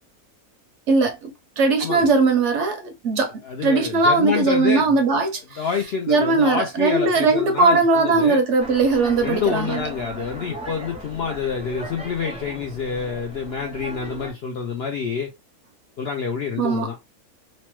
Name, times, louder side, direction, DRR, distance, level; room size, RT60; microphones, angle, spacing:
voice 1, 0.9-1.3 1.6-3.3 3.6-5.6 6.1-9.8 16.6-16.9, right 3 dB, 65° right, 0.8 m, -19 dB
voice 2, 1.8-2.2 3.4-4.9 5.6-8.4 9.2-15.3 16.0-17.0, left 6 dB, 70° left, 0.6 m, -27 dB
sound 1, 8.6-14.3, right 1 dB, 10° right, 0.4 m, -36 dB
3.0 x 2.1 x 2.9 m
omnidirectional pair, 1.5 m